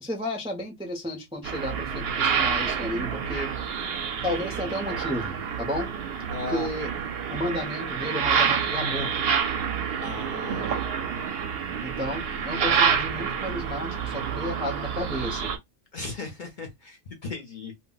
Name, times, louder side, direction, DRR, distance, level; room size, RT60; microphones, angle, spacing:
voice 1, 0.0-3.5 4.2-5.9 6.5-6.9 7.3-9.2 11.8-15.5, left 1 dB, 10° right, 0.4 m, -32 dB
sound 1, 1.4-15.6, right 7 dB, 60° right, 0.7 m, -28 dB
voice 2, 6.3-6.7 10.0-10.8 15.9-17.7, left 3 dB, 50° left, 0.6 m, -36 dB
2.2 x 2.1 x 3.7 m
omnidirectional pair, 1.3 m